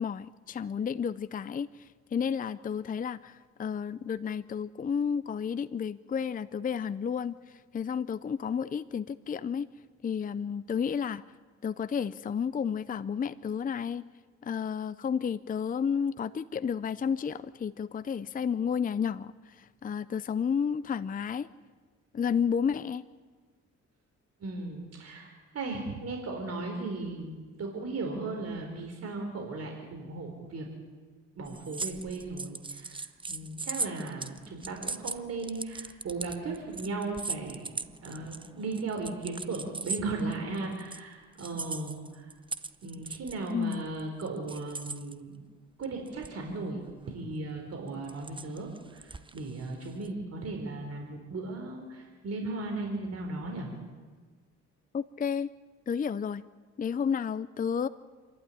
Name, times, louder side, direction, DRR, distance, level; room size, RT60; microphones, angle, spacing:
voice 1, 0.0-7.3 7.7-9.7 10.0-11.2 11.6-14.0 14.4-21.5 22.1-23.0 43.5-43.9 54.9-55.5 55.9-56.4 56.8-57.9, left 7 dB, 30° left, 14 dB, 0.6 m, -31 dB
voice 2, 24.4-30.7 31.4-42.3 42.8-45.4 45.8-53.7, right 3 dB, 55° right, 2 dB, 4.0 m, -37 dB
sound 1, 31.4-41.0 41.4-45.1 45.8-46.5 46.9-47.1 47.9-50.1, right 3 dB, 15° right, 0.9 m, -38 dB
28.0 x 12.0 x 9.9 m, 1.4 s
cardioid pair, 90°, 30 cm